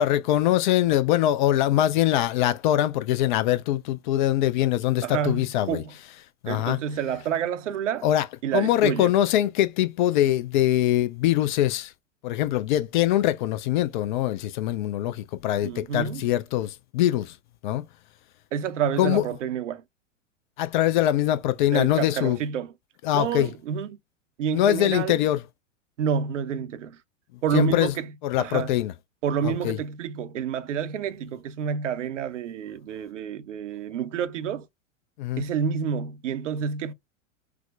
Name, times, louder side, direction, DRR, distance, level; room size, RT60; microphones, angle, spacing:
voice 1, 0.0-5.8 6.4-6.8 8.0-8.3 8.5-11.9 12.2-17.3 17.6-17.8 19.0-19.2 20.6-22.4 23.0-23.5 24.5-25.4 27.5-27.9 28.2-28.9 29.4-29.8 35.2-35.4, left 13 dB, 40° left, 0.4 m, -23 dB
voice 2, 5.0-5.9 6.5-8.1 8.4-9.1 15.6-16.3 18.5-19.8 21.7-22.7 23.1-24.0 24.4-25.3 26.0-27.0 27.4-28.1 28.4-28.8 29.2-34.7 35.4-36.9, right 7 dB, 70° right, 0.6 m, -28 dB
4.7 x 2.0 x 2.3 m
figure-of-eight pair, 95°, 39 cm